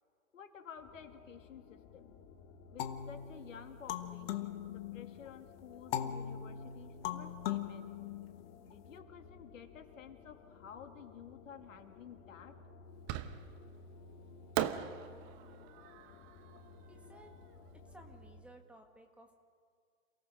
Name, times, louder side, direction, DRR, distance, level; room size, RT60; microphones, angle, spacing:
voice 1, 0.3-2.1 2.7-7.9 8.6-12.6, left 7 dB, 70° left, 6 dB, 2.4 m, -53 dB
sound 1, 0.8-18.4, left 4 dB, 30° left, 2.0 m, -56 dB
sound 2, 2.8-5.3 5.9-8.7, left 10 dB, 45° left, 1.5 m, -40 dB
Fireworks, 13.1-13.7 14.6-17.7, right 12 dB, 30° right, 1.0 m, -40 dB
voice 2, 16.9-17.3 17.8-19.4, right 1 dB, 5° right, 3 dB, 1.7 m, -57 dB
28.0 x 17.5 x 6.3 m, 2.1 s
hypercardioid pair, 125°, 40 cm